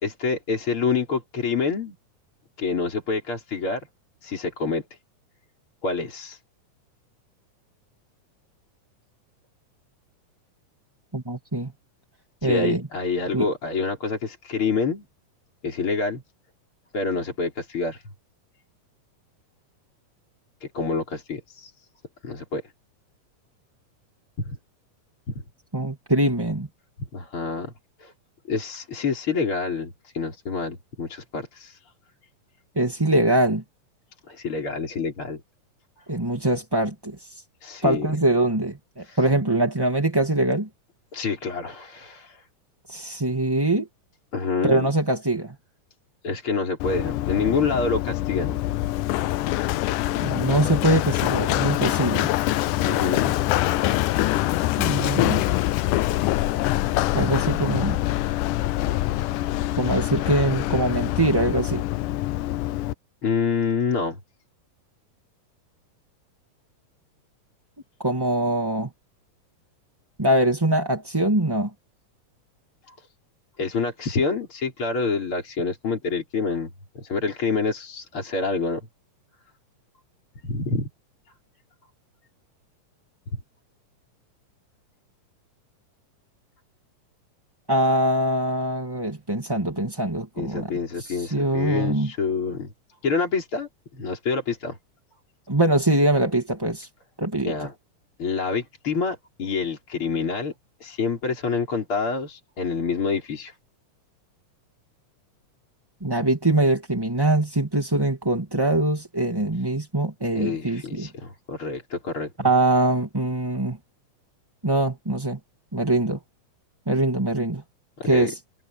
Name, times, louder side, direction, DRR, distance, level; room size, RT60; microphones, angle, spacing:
voice 1, 0.0-1.9 2.6-3.9 4.2-4.8 5.8-6.4 12.4-15.0 15.6-16.2 16.9-18.0 20.6-21.7 22.2-22.6 24.4-24.6 25.3-25.4 27.1-27.7 28.0-28.1 28.5-31.8 34.3-35.4 36.0-36.1 37.6-38.1 39.0-39.2 41.1-42.5 44.3-44.9 46.2-48.6 52.9-53.4 63.2-64.2 72.9-73.0 73.6-78.8 80.4-80.9 90.4-92.7 93.0-94.8 97.4-97.7 98.2-100.5 100.8-103.5 110.3-112.3 118.0-118.3, left 4 dB, 40° left, 5.0 m, -27 dB
voice 2, 11.1-11.7 12.4-12.8 13.3-13.5 25.7-26.7 32.8-33.6 36.1-37.4 37.8-40.7 42.9-43.9 44.6-45.5 50.2-52.3 54.8-55.4 57.1-58.0 59.8-61.8 68.0-68.9 70.2-71.7 87.7-90.7 91.0-92.1 95.5-96.9 97.2-97.7 106.0-111.1 112.4-113.8 114.6-115.4 115.7-116.2 116.9-117.6 118.0-118.4, right 1 dB, 10° right, 1.7 m, -23 dB
Run, 46.8-62.9, left 16 dB, 80° left, 2.1 m, -24 dB
omnidirectional pair, 3.8 m